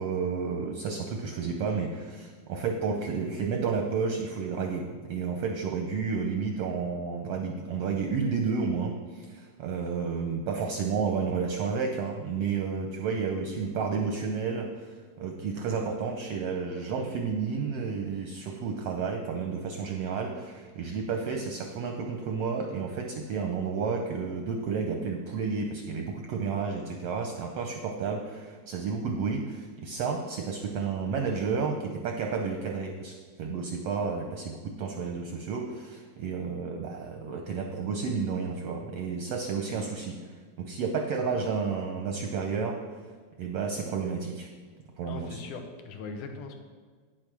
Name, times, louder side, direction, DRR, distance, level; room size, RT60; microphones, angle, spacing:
voice 1, 0.0-40.2 40.6-42.8 43.4-44.5 45.0-45.4, right 5 dB, 70° right, 3 dB, 1.5 m, -31 dB
voice 2, 45.1-46.5, left 4 dB, 85° left, 4 dB, 2.5 m, -39 dB
9.0 x 6.9 x 6.1 m, 1.5 s
omnidirectional pair, 3.5 m